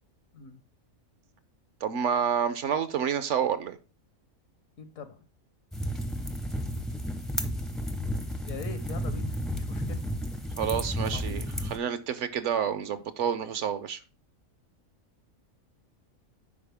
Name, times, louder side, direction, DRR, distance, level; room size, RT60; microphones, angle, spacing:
voice 1, 1.8-3.8 10.6-14.0, right 8 dB, 65° right, 0.9 m, -29 dB
voice 2, 4.8-5.2 8.5-10.1 11.0-11.4, left 5 dB, 75° left, 1.3 m, -42 dB
sound 1, 5.7-11.8, equal, ahead, 0.4 m, -32 dB
10.5 x 4.3 x 3.4 m
omnidirectional pair, 1.4 m